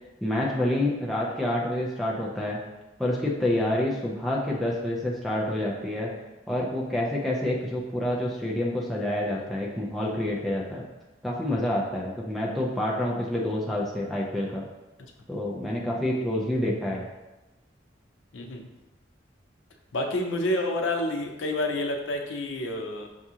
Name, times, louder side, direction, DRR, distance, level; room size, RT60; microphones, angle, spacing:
voice 1, 0.2-2.6 3.0-6.1 6.5-10.8 11.2-14.6 15.3-17.0, left 1 dB, ahead, -5 dB, 0.4 m, -28 dB
voice 2, 18.3-18.7 19.9-23.1, left 1 dB, 90° left, 3 dB, 0.5 m, -29 dB
5.8 x 2.4 x 2.8 m, 1.0 s
head